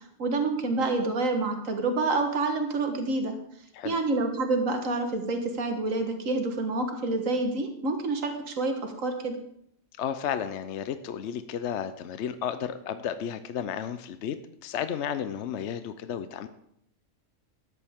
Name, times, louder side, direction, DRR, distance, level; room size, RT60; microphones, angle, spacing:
voice 1, 0.2-3.4 3.8-9.4, right 3 dB, 80° right, 5 dB, 1.7 m, -28 dB
voice 2, 10.0-14.4 14.6-16.5, left 8 dB, 65° left, 11 dB, 0.9 m, -33 dB
14.0 x 10.0 x 3.6 m, 0.74 s
omnidirectional pair, 1.3 m